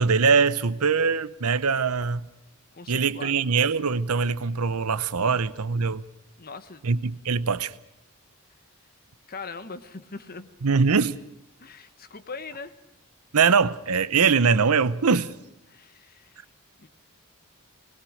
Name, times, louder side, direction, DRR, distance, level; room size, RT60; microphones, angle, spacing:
voice 1, 0.0-2.3 2.9-6.0 6.8-7.7 10.6-11.2 13.3-15.3, right 5 dB, 80° right, 0.8 m, -22 dB
voice 2, 2.7-3.4 5.3-5.4 6.4-6.9 9.3-10.5 11.6-12.8 15.1-15.3 15.7-16.4 16.8-16.9, left 4 dB, 45° left, 1.3 m, -41 dB
21.0 x 20.5 x 6.5 m
head